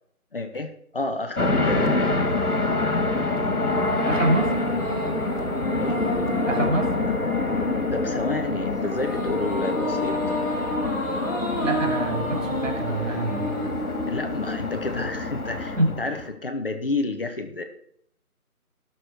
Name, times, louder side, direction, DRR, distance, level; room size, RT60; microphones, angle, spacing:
voice 1, 0.3-2.2 5.8-6.0 7.1-7.2 7.9-10.2 14.0-17.6, left 2 dB, 40° left, 6 dB, 1.2 m, -30 dB
sound 1, 1.4-16.3, left 2 dB, 75° left, 2.5 m, -26 dB
sound 2, 3.6-15.0, equal, 15° left, 1.1 m, -31 dB
voice 2, 4.0-4.5 6.4-6.9 11.6-13.7 15.8-16.0, right 1 dB, 60° right, 2 dB, 2.8 m, -26 dB
17.5 x 6.6 x 4.5 m, 0.68 s
figure-of-eight pair, 160°, 44 cm